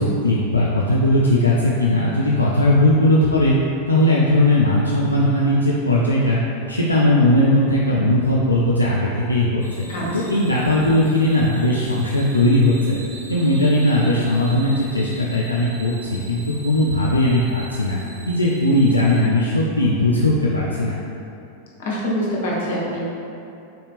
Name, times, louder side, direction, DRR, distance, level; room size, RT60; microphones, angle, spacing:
voice 1, 0.0-3.6 3.9-6.4 6.7-9.8 10.1-13.0 13.3-18.0 18.3-21.0, left 1 dB, 85° left, -5 dB, 0.3 m, -18 dB
sound 1, 9.6-19.2, right 2 dB, 85° right, 0.6 m, -41 dB
voice 2, 9.9-10.4 21.8-23.0, equal, 55° left, -5 dB, 0.9 m, -25 dB
3.7 x 2.8 x 3.3 m, 2.7 s
figure-of-eight pair, 90°, 0 cm